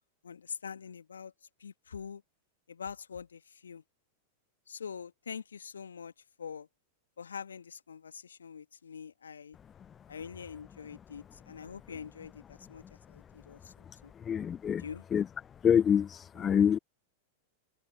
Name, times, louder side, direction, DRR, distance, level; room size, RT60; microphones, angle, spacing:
voice 1, 0.2-1.3 1.6-2.2 2.7-3.8 4.7-6.1 6.4-6.7 7.2-9.6 10.1-12.8 13.1-14.1 14.8-15.0 16.4-16.7, left 6 dB, 75° left, 1.7 m, -44 dB
voice 2, 14.3-14.8 15.1-15.2 15.6-16.8, left 8 dB, 25° left, 0.4 m, -25 dB
figure-of-eight pair, 90°, 0 cm